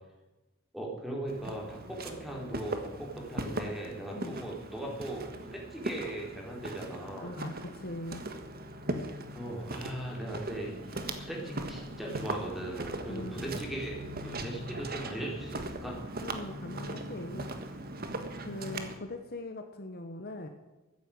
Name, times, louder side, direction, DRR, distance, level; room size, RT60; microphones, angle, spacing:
voice 1, 0.7-7.3 9.3-16.0, right 1 dB, ahead, -2 dB, 4.2 m, -39 dB
Walk footsteps, 1.3-19.0, right 2 dB, 50° right, 1.6 m, -39 dB
voice 2, 7.2-8.2 13.0-13.6 16.2-17.5 18.3-20.5, left 1 dB, 50° left, 6 dB, 1.2 m, -41 dB
14.5 x 9.8 x 9.0 m, 1.1 s
head